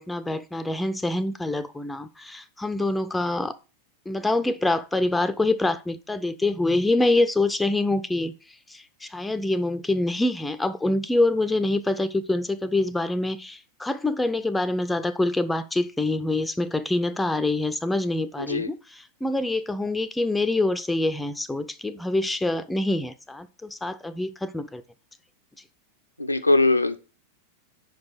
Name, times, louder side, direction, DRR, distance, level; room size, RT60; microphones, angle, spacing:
voice 1, 0.0-3.5 4.1-8.3 8.7-24.8, left 2 dB, 5° left, 0.5 m, -25 dB
voice 2, 26.2-27.0, left 2 dB, 85° left, 0.6 m, -20 dB
5.3 x 5.1 x 6.0 m
figure-of-eight pair, 90°, 0 cm